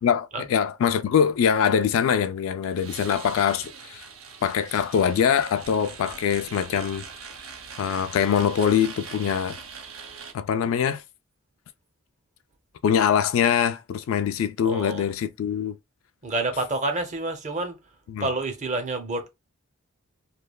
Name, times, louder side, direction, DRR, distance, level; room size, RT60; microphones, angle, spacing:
voice 1, 0.0-4.0 4.4-7.0 7.8-9.6 10.3-11.0 12.8-15.8 18.1-18.3, left 8 dB, 70° left, 0.3 m, -23 dB
sound 1, 2.8-10.3, right 6 dB, 70° right, 0.6 m, -42 dB
voice 2, 14.6-15.1 16.2-17.8 18.2-19.3, right 2 dB, 35° right, 0.6 m, -28 dB
3.1 x 2.2 x 2.2 m
head